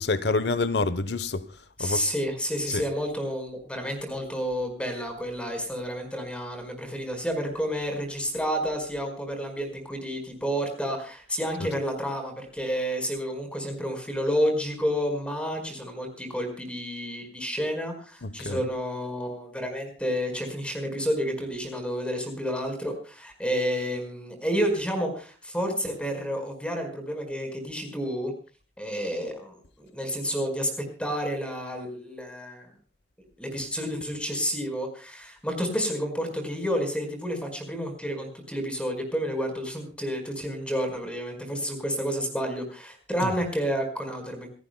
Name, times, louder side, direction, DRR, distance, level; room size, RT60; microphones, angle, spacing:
voice 1, 0.0-2.1 2.7-2.8 18.2-18.7 43.2-43.3, left 3 dB, 75° left, 0.9 m, -28 dB
voice 2, 1.8-28.3 28.8-32.7 33.4-44.5, equal, 5° left, 4.7 m, -30 dB
27.5 x 14.0 x 2.2 m
head